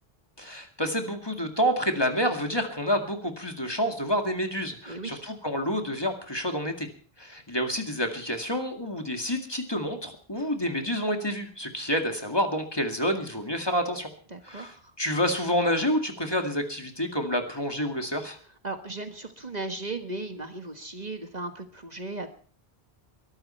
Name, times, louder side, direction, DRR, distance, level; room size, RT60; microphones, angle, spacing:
voice 1, 0.4-6.9 7.2-14.1 14.4-18.4, equal, 25° left, 4 dB, 2.2 m, -28 dB
voice 2, 4.9-5.2 14.3-14.9 18.6-22.3, right 2 dB, 45° right, 7 dB, 1.6 m, -36 dB
22.5 x 12.5 x 4.4 m, 0.43 s
omnidirectional pair, 1.0 m